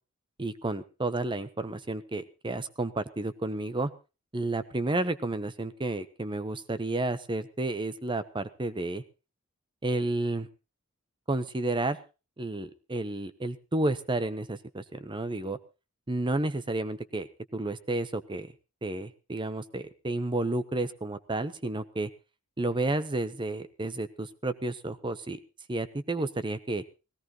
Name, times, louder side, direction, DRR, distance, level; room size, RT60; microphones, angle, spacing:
voice 1, 0.4-3.9 4.3-9.0 9.8-10.5 11.3-12.0 12.4-15.6 16.1-17.3 17.5-18.5 18.8-22.1 22.6-25.4 25.7-26.8, right 2 dB, 25° right, 12 dB, 0.9 m, -31 dB
19.0 x 17.0 x 3.1 m, 0.31 s
head